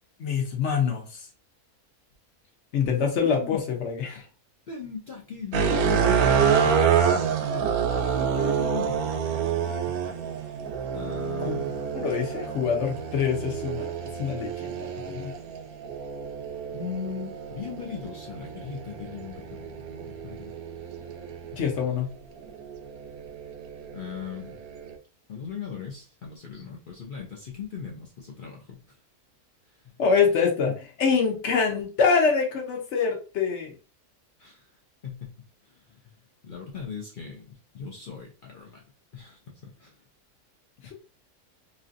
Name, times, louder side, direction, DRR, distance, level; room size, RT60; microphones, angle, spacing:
voice 1, 0.2-1.2 2.7-4.2 11.4-11.6 11.9-13.9 14.2-15.3 16.7-17.3 21.5-22.1 30.0-33.7, left 6 dB, 55° left, 0.9 m, -25 dB
voice 2, 3.2-3.6 4.7-6.8 7.5-9.0 9.9-10.0 10.5-10.6 10.9-11.8 16.7-16.9 17.5-20.5 23.9-24.6 25.3-29.0 29.7-29.9 34.4-34.7 35.0-35.4 35.6-36.0 36.4-38.8 39.1-40.0 40.8-40.9, left 6 dB, 80° left, 0.4 m, -39 dB
sound 1, 5.5-21.8 22.5-25.0, right 7 dB, 75° right, 1.0 m, -28 dB
3.1 x 2.7 x 2.5 m
omnidirectional pair, 1.6 m